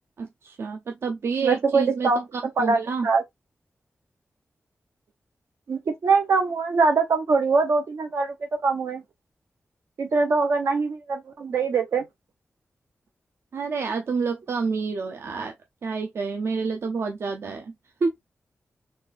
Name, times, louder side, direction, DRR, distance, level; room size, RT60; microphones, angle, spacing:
voice 1, 0.2-2.1 2.6-3.1 13.5-15.5 15.8-17.7 18.0-18.1, right 5 dB, 65° right, 0.5 m, -28 dB
voice 2, 1.4-3.2 5.7-9.0 10.0-12.0, right 4 dB, 85° right, 0.9 m, -23 dB
4.1 x 2.5 x 3.3 m
wide cardioid pair, 175°, 5 cm